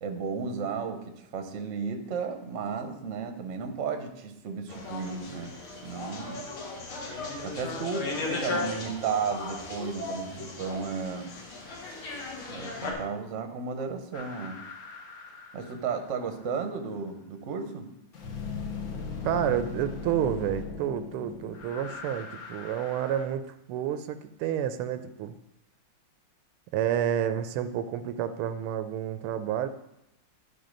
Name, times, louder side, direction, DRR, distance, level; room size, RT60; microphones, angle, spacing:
voice 1, 0.0-5.5 5.8-6.4 7.4-11.3 12.5-14.6 15.5-17.9, right 5 dB, 50° right, 6 dB, 0.9 m, -34 dB
sound 1, 4.7-12.9, left 3 dB, 75° left, 2.2 m, -36 dB
sound 2, 14.1-16.4 18.1-23.2, left 5 dB, 50° left, 1.3 m, -39 dB
voice 2, 19.2-25.3 26.7-29.7, right 10 dB, 85° right, 10 dB, 1.5 m, -30 dB
12.0 x 4.3 x 5.2 m, 0.85 s
omnidirectional pair, 2.4 m